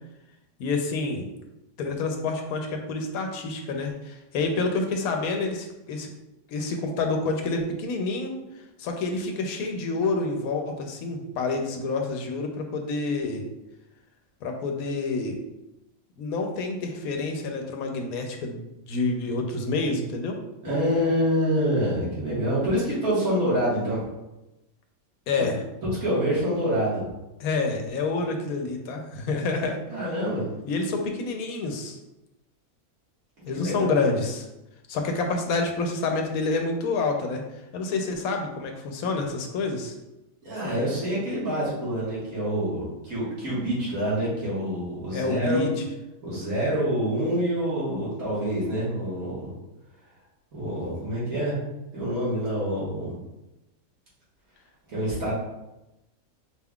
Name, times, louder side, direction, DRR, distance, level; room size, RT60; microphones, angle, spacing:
voice 1, 0.6-1.3 1.8-6.1 6.5-8.3 8.8-13.4 14.4-15.4 16.2-18.6 18.9-20.4 25.3-25.6 27.4-29.8 30.6-32.0 33.5-34.5 34.9-37.4 37.7-39.9 45.1-45.7, left 3 dB, 85° left, 3 dB, 1.1 m, -28 dB
voice 2, 20.6-24.0 25.8-27.0 29.9-30.4 33.5-34.0 40.4-45.6 46.2-49.5 50.5-51.6 51.9-53.1 54.9-55.3, equal, 75° right, -8 dB, 2.1 m, -26 dB
4.5 x 3.6 x 2.3 m, 0.95 s
omnidirectional pair, 1.5 m